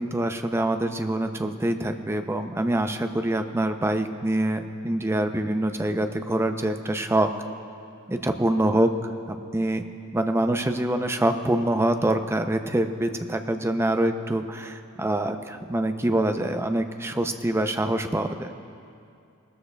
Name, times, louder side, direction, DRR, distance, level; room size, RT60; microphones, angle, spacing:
voice 1, 0.0-7.3 8.1-8.9 9.3-9.9 10.1-18.5, right 1 dB, 10° right, 7 dB, 0.5 m, -25 dB
20.0 x 13.0 x 2.3 m, 2.5 s
head